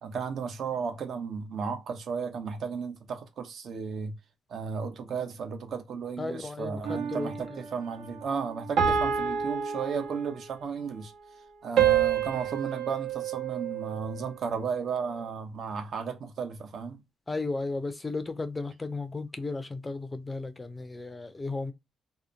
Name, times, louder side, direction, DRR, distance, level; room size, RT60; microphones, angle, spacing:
voice 1, 0.0-4.2 4.5-11.1 11.6-17.0, right 6 dB, 60° right, 0.8 m, -34 dB
voice 2, 6.2-7.6 17.3-21.7, left 3 dB, 20° left, 0.5 m, -35 dB
sound 1, 6.8-7.5 8.8-10.6 11.8-14.2, right 8 dB, 80° right, 1.0 m, -28 dB
2.8 x 2.1 x 2.4 m
cardioid pair, 90°, 0 cm